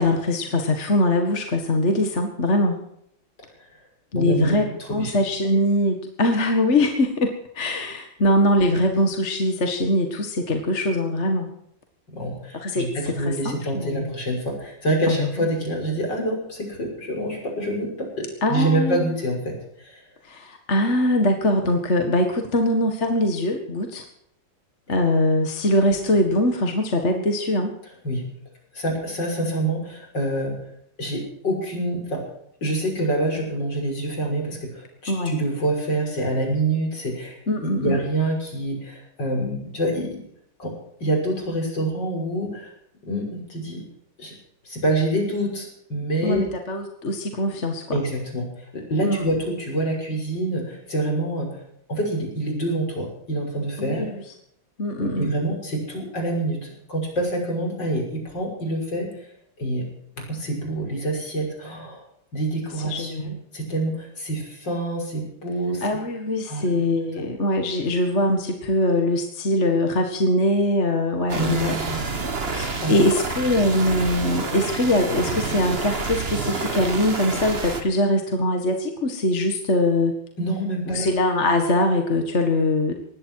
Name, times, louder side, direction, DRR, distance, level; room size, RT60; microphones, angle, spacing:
voice 1, 0.0-2.8 4.1-11.5 12.5-12.9 13.2-14.1 15.1-15.5 18.4-19.1 20.2-24.0 24.9-27.7 35.1-35.4 37.5-38.0 46.2-48.0 49.0-49.3 53.8-54.2 54.8-55.3 62.8-63.4 65.8-71.8 72.5-80.1 80.9-82.9, left 1 dB, 35° left, 4 dB, 2.1 m, -22 dB
voice 2, 4.1-5.2 12.1-20.0 28.0-28.2 28.7-30.5 31.0-32.2 32.6-40.2 40.6-40.7 41.0-42.7 43.1-43.8 44.2-44.3 44.6-46.4 47.9-51.6 51.9-54.1 55.0-59.3 59.6-59.8 60.3-62.0 62.3-65.9 66.5-66.7 71.3-72.0 72.6-73.0 80.4-81.1, right 1 dB, 65° left, 1 dB, 6.7 m, -26 dB
sound 1, 71.3-77.8, right 4 dB, 30° right, 1.8 m, -28 dB
19.5 x 15.5 x 4.8 m, 0.72 s
omnidirectional pair, 2.1 m